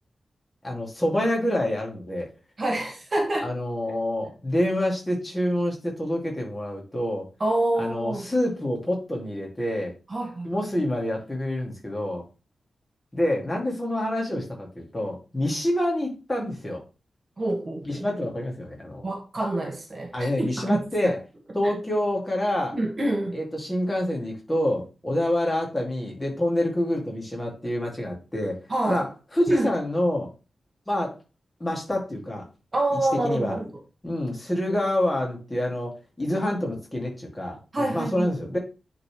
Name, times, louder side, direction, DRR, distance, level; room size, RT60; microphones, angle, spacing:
voice 1, 0.6-2.3 3.4-7.2 7.8-9.9 10.4-12.2 13.1-16.8 17.8-19.0 20.1-21.2 21.5-22.8 23.3-28.6 28.9-30.3 30.9-31.2 31.6-32.4 33.2-33.6 34.0-38.6, left 1 dB, 15° left, 2.3 m, -27 dB
voice 2, 2.6-3.5 7.4-8.3 10.1-10.5 17.4-18.0 19.0-21.1 22.7-23.4 28.7-29.0 29.5-29.7 32.7-33.7 37.7-38.3, right 1 dB, 30° right, 1.4 m, -27 dB
9.6 x 4.0 x 3.2 m
wide cardioid pair, 165°, 0 cm